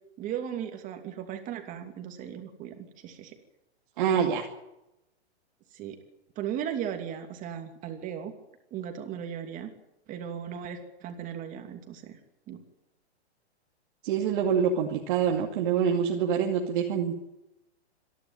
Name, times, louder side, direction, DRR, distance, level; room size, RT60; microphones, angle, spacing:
voice 1, 0.2-3.4 5.7-6.0 6.4-8.3 8.7-9.7 10.1-12.2 12.5-12.6, right 9 dB, 25° right, 5 dB, 2.8 m, -37 dB
voice 2, 4.0-4.5 14.0-17.1, right 7 dB, 45° right, 0 dB, 2.4 m, -26 dB
26.5 x 11.0 x 9.3 m, 0.93 s
hypercardioid pair, 150°, 34 cm